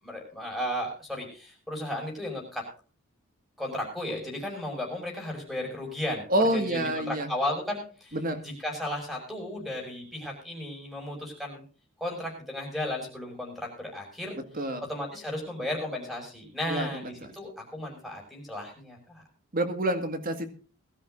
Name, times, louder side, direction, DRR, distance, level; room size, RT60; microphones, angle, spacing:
voice 1, 0.0-2.7 3.6-6.3 6.5-8.2 8.4-11.6 12.0-14.4 14.8-19.2, left 1 dB, ahead, -2 dB, 6.4 m, -34 dB
voice 2, 6.3-7.3 8.1-8.4 14.6-14.8 16.7-17.1 19.5-20.5, right 1 dB, 45° right, 8 dB, 1.9 m, -27 dB
22.0 x 13.0 x 2.6 m, 0.38 s
head